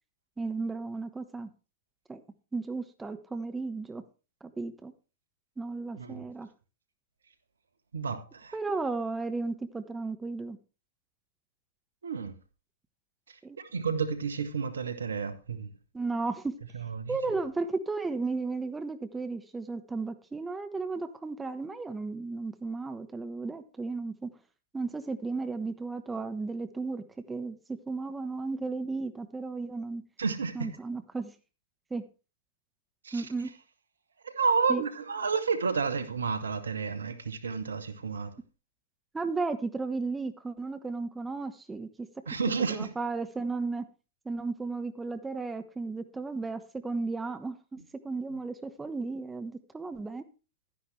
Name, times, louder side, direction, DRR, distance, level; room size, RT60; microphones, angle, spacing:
voice 1, 0.4-1.5 2.1-2.2 2.5-4.0 4.4-4.9 5.6-6.5 8.5-10.6 13.4-13.6 15.9-16.5 17.1-24.3 24.7-30.0 30.5-31.3 31.9-32.0 33.1-33.5 34.7-34.8 39.1-42.1 42.7-43.9 44.2-50.2, right 3 dB, 10° right, 1.1 m, -34 dB
voice 2, 6.0-6.3 7.9-8.5 12.0-12.3 13.3-15.7 16.7-17.2 30.2-30.7 33.0-33.3 34.2-38.3 42.3-42.9, right 5 dB, 80° right, 1.2 m, -31 dB
11.5 x 10.0 x 3.3 m
figure-of-eight pair, 105°, 0 cm